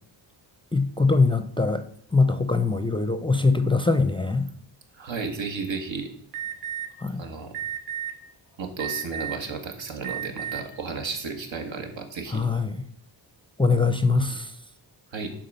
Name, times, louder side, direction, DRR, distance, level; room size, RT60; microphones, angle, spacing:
voice 1, 0.7-1.8 2.1-4.5 7.0-7.2 12.3-12.8 13.6-14.5, left 3 dB, 10° left, 0.4 m, -22 dB
voice 2, 4.9-6.1 7.2-7.6 8.6-12.5 14.3-14.4 15.1-15.3, right 4 dB, 85° right, 1.7 m, -33 dB
Alarm, 6.3-6.9 7.5-8.1 8.8-9.4 10.0-10.6, right 10 dB, 55° right, 1.6 m, -32 dB
11.0 x 3.8 x 6.7 m
wide cardioid pair, 175°, 45 cm